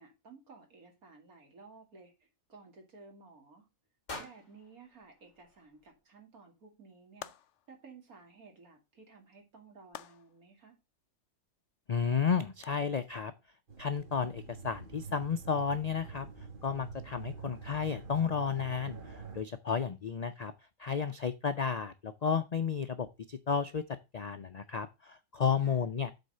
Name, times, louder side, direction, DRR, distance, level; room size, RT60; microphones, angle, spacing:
voice 1, 0.0-3.7 4.2-7.3 7.7-10.8 25.6-25.9, right 4 dB, 90° right, 2.8 m, -55 dB
sound 1, 4.1-6.2, left 2 dB, 30° left, 1.7 m, -48 dB
sound 2, 7.2-7.8 9.9-10.5 12.6-12.7, left 10 dB, 65° left, 0.9 m, -47 dB
voice 2, 11.9-13.3 13.8-16.3 16.6-20.5 20.8-23.8 24.1-26.1, left 6 dB, 85° left, 0.3 m, -32 dB
sound 3, 13.7-19.4, right 5 dB, 35° right, 1.5 m, -46 dB
8.0 x 4.2 x 6.5 m
omnidirectional pair, 1.5 m